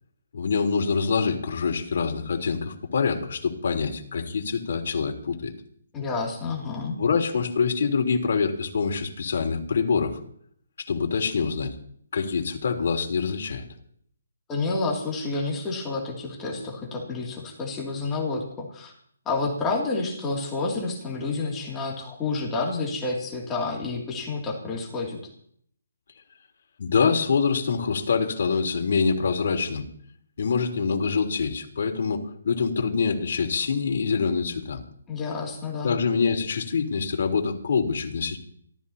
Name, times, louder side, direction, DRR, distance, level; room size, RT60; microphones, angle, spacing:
voice 1, 0.3-5.5 7.0-10.2 10.9-11.7 12.1-13.6 26.8-29.8 30.4-34.8 35.8-38.4, left 5 dB, 50° left, 2 dB, 3.5 m, -25 dB
voice 2, 5.9-7.0 14.5-18.9 19.3-25.2 35.1-36.0, left 3 dB, 10° left, -3 dB, 2.6 m, -29 dB
28.0 x 13.5 x 2.9 m, 0.64 s
hypercardioid pair, 170°, 0 cm